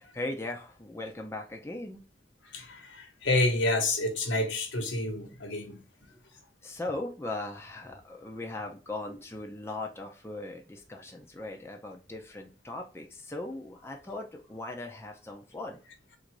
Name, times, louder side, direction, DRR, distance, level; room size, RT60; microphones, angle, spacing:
voice 1, 0.0-2.0 6.1-6.2 6.6-15.8, left 2 dB, 15° left, 0.6 m, -39 dB
voice 2, 2.5-5.8, left 2 dB, 80° left, 1.1 m, -28 dB
3.8 x 2.6 x 4.5 m
head